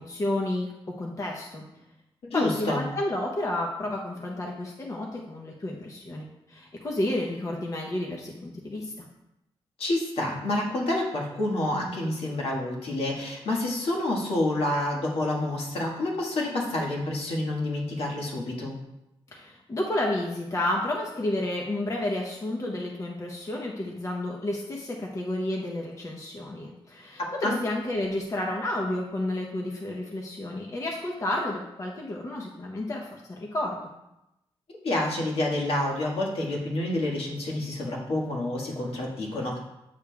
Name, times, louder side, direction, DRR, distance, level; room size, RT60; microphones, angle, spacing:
voice 1, 0.0-1.6 2.3-9.0 19.3-33.9, left 1 dB, 30° left, 0 dB, 0.8 m, -31 dB
voice 2, 2.2-2.8 9.8-18.7 27.4-27.6 34.8-39.6, left 1 dB, 75° left, -1 dB, 1.5 m, -28 dB
8.3 x 6.7 x 2.3 m, 0.89 s
wide cardioid pair, 125°, 10 cm